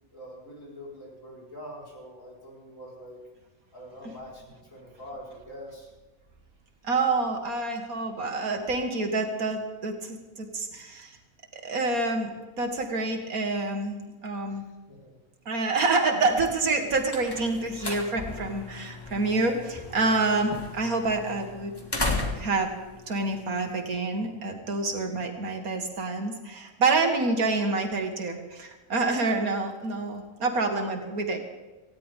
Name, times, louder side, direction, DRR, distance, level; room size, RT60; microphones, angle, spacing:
voice 1, 0.1-3.2 3.7-5.9 14.5-15.2 25.1-25.5 29.9-30.2, equal, 60° left, -4 dB, 5.4 m, -45 dB
voice 2, 6.8-11.2 11.5-14.6 15.5-21.7 22.3-22.7 23.1-31.4, right 3 dB, 80° right, 3 dB, 2.3 m, -27 dB
sound 1, 16.6-24.1, left 2 dB, 15° left, 2.0 m, -36 dB
19.0 x 16.0 x 3.7 m, 1.2 s
omnidirectional pair, 1.5 m